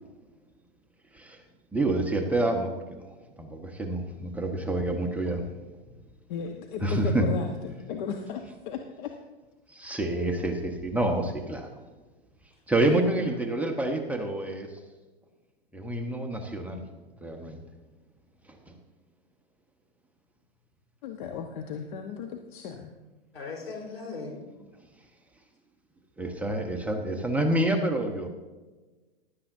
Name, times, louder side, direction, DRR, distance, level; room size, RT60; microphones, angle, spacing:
voice 1, 1.7-3.0 3.4-5.4 6.8-7.4 9.7-11.7 12.7-14.7 15.7-16.8 17.2-17.6 18.7-18.8 26.2-28.3, right 1 dB, 5° right, 3 dB, 1.0 m, -28 dB
voice 2, 6.3-9.1 21.0-22.9, left 6 dB, 55° left, 4 dB, 1.1 m, -35 dB
voice 3, 12.8-13.4 23.3-24.4, left 4 dB, 80° left, -1 dB, 4.0 m, -39 dB
15.5 x 11.5 x 2.7 m, 1.3 s
hypercardioid pair, 115°, 30 cm